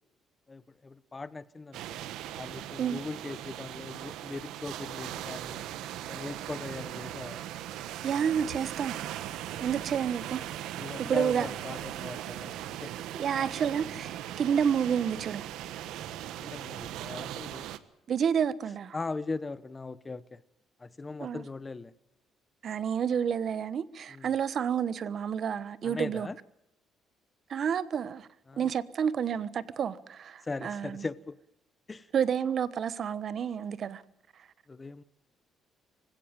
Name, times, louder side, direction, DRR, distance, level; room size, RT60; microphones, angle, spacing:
voice 1, 0.5-2.0 2.4-5.6 6.1-7.5 10.8-12.9 13.3-13.4 16.4-17.7 18.9-20.4 20.8-21.9 24.1-24.3 25.8-26.4 28.5-28.7 30.4-31.4 31.9-32.1 34.7-35.0, left 3 dB, 20° left, 0.9 m, -39 dB
sound 1, 1.7-17.8, right 12 dB, 90° right, 1.4 m, -39 dB
voice 2, 8.0-9.0 9.6-10.7 11.0-11.5 13.1-15.5 18.1-19.0 21.2-21.4 22.6-26.3 27.5-28.3 28.6-31.0 32.1-34.0, right 8 dB, 45° right, 1.2 m, -30 dB
25.5 x 16.5 x 8.9 m
cardioid pair, 140°, 0 cm